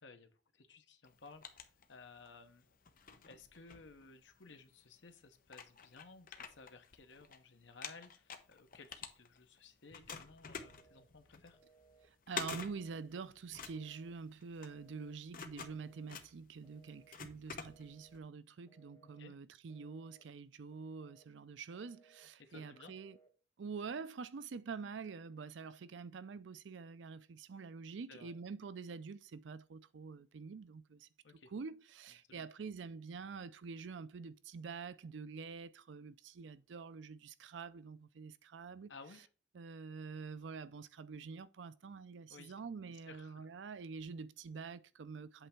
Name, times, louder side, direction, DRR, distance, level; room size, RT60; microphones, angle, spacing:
voice 1, 0.0-2.7 3.3-11.6 19.0-19.3 22.4-22.9 28.1-28.3 31.2-31.5 32.3-32.5 38.9-39.3 42.3-42.5 43.1-43.5, left 4 dB, 85° left, 1.0 m, -57 dB
sound 1, 1.0-2.4 2.8-4.5 5.1-5.2 5.5-7.4 7.7-9.6 9.9-18.2, left 6 dB, 50° left, 0.8 m, -48 dB
Telephone, 10.5-11.1 11.5-12.1 12.5-13.1 13.6-14.1 14.6-15.2 15.6-16.2 16.6-17.2 17.6-18.2 18.7-19.2 19.7-20.3 20.7-21.3 21.7-22.3 22.7-23.3, right 4 dB, 20° left, 1.3 m, -67 dB
voice 2, 12.0-23.2 23.6-31.1 31.5-38.9 39.5-45.5, right 5 dB, 80° right, 0.5 m, -46 dB
8.1 x 3.4 x 5.8 m
head